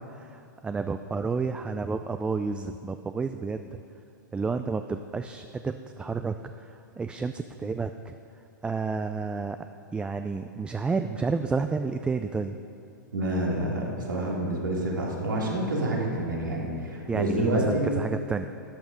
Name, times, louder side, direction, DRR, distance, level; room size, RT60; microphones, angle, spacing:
voice 1, 0.0-3.8 4.3-8.1 8.6-9.6 9.9-12.5 17.1-18.5, right 4 dB, 10° right, 8 dB, 0.3 m, -30 dB
voice 2, 13.1-17.9, right 1 dB, 90° right, -4 dB, 3.2 m, -28 dB
13.0 x 9.2 x 5.3 m, 2.6 s
hypercardioid pair, 115°, 11 cm